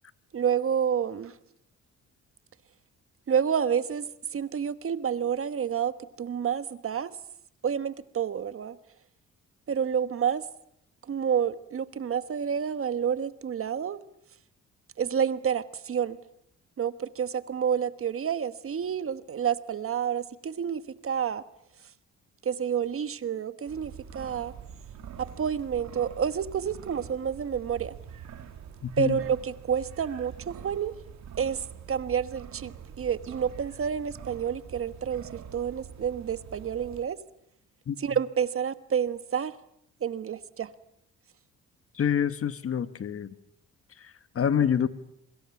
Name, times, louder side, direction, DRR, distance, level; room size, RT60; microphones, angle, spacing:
voice 1, 0.3-1.3 3.3-4.0 4.3-7.2 7.6-8.8 9.7-10.4 11.0-14.0 15.0-16.2 16.8-21.4 22.4-24.5 25.2-27.9 29.0-30.9 31.4-37.2 38.0-39.6 40.0-40.7, right 8 dB, 45° right, 13 dB, 1.3 m, -29 dB
sound 1, 23.7-37.0, right 8 dB, 65° right, 2.7 m, -45 dB
voice 2, 28.8-29.2 37.9-38.0 41.9-43.3 44.0-44.9, left 8 dB, 50° left, 12 dB, 1.4 m, -27 dB
26.5 x 24.0 x 7.2 m, 0.75 s
cardioid pair, 90°, 30 cm